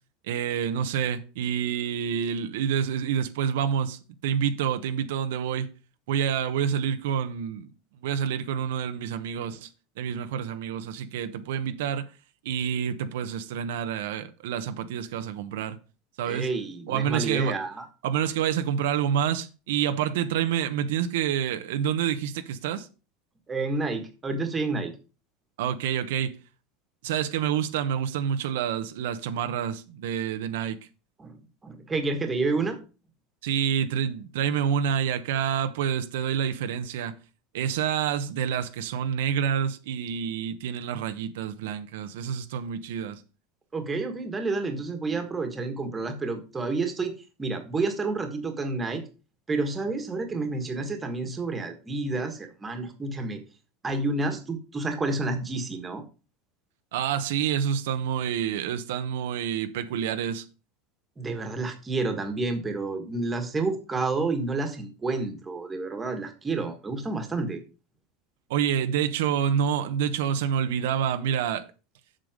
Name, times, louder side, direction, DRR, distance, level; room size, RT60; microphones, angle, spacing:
voice 1, 0.3-5.7 6.1-7.7 8.0-9.7 10.0-12.1 12.4-15.8 16.2-16.5 16.9-17.5 18.0-22.9 25.6-26.4 27.0-30.8 33.4-37.2 37.5-43.2 56.9-60.5 68.5-71.7, right 8 dB, 85° right, 0.9 m, -28 dB
voice 2, 16.3-17.9 23.5-24.9 31.2-31.4 31.6-32.8 43.7-49.0 49.5-53.4 53.8-56.0 61.2-67.6, right 3 dB, 15° right, 1.5 m, -29 dB
7.6 x 6.8 x 5.0 m
supercardioid pair, 165°, 0 cm